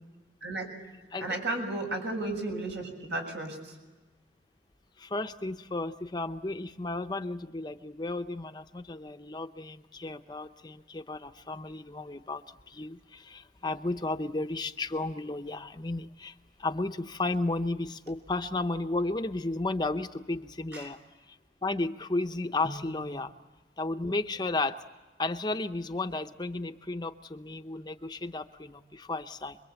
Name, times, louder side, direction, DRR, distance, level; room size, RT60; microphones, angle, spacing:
voice 1, 1.2-3.8 20.7-20.9, right 2 dB, 75° right, 2 dB, 7.0 m, -34 dB
voice 2, 5.0-12.4 12.7-16.3 16.6-21.0 21.6-23.3 23.8-24.8 25.2-29.6, left 2 dB, 25° left, 7 dB, 0.8 m, -33 dB
26.5 x 22.5 x 8.1 m, 1.2 s
head